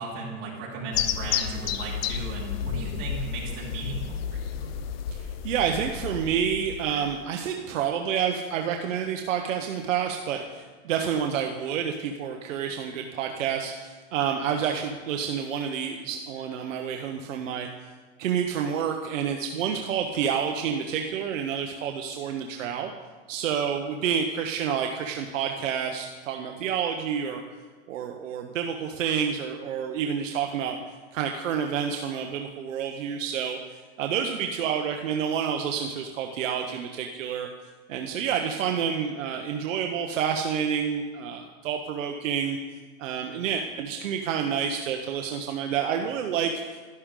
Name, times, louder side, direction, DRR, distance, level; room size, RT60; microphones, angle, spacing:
voice 1, 0.0-4.8, right 3 dB, 40° right, -5 dB, 3.9 m, -36 dB
sound 1, 0.9-7.2, left 8 dB, 50° left, 0.7 m, -32 dB
voice 2, 5.1-17.7 18.2-22.9 23.3-27.4 27.9-37.5 37.9-42.6 43.0-46.5, right 8 dB, 80° right, 3 dB, 1.0 m, -29 dB
12.0 x 11.5 x 3.8 m, 1.4 s
supercardioid pair, 160°, 38 cm